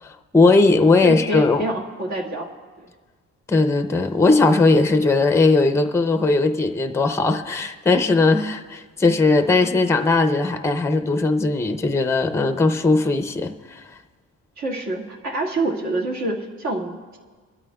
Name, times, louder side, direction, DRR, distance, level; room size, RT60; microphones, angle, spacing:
voice 1, 0.0-1.7 3.5-13.8, left 3 dB, 10° left, 7 dB, 0.5 m, -18 dB
voice 2, 1.0-2.5 2.8-2.9 14.6-17.2, right 2 dB, 60° right, -1 dB, 1.9 m, -26 dB
24.0 x 12.5 x 2.3 m, 1.4 s
cardioid pair, 160°, 31 cm